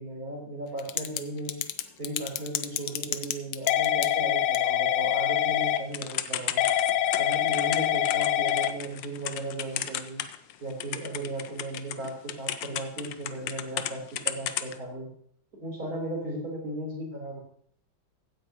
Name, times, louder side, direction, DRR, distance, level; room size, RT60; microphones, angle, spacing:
voice 1, 0.0-1.6 2.0-6.6 7.2-10.2 10.6-15.1 15.5-17.4, right 1 dB, 45° right, -2 dB, 4.0 m, -36 dB
Typing / Telephone, 0.8-1.2 1.5-10.5 10.8-13.9 14.2-14.7, left 11 dB, 70° left, 1.2 m, -26 dB
15.5 x 9.4 x 2.9 m, 0.64 s
omnidirectional pair, 2.2 m